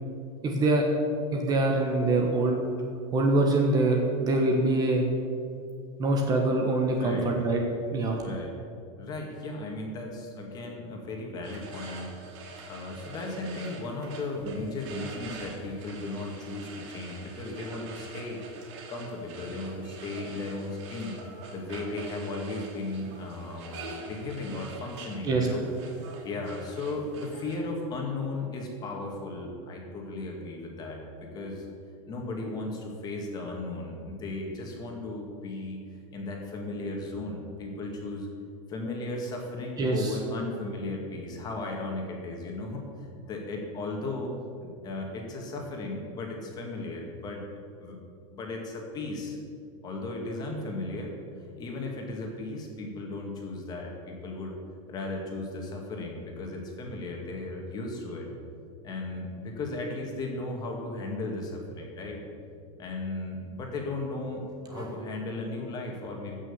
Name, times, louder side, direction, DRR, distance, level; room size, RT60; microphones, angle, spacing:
voice 1, 0.4-0.8 1.3-2.7 3.1-5.0 6.0-7.6 7.9-8.2 25.2-25.5 39.8-40.2 64.7-64.9, right 2 dB, 25° right, 1 dB, 1.2 m, -24 dB
voice 2, 7.0-7.3 8.1-8.5 9.0-12.1 12.7-21.2 21.5-25.7 26.2-31.7 32.1-35.8 36.1-38.3 38.7-44.3 44.6-47.4 47.8-48.0 48.3-49.4 49.8-54.5 54.9-58.3 58.8-62.2 62.8-66.4, left 2 dB, 25° left, 1 dB, 2.1 m, -36 dB
sound 1, 11.4-27.6, right 3 dB, 60° right, 2.6 m, -45 dB
15.0 x 6.3 x 7.1 m, 2.4 s
supercardioid pair, 160°, 17 cm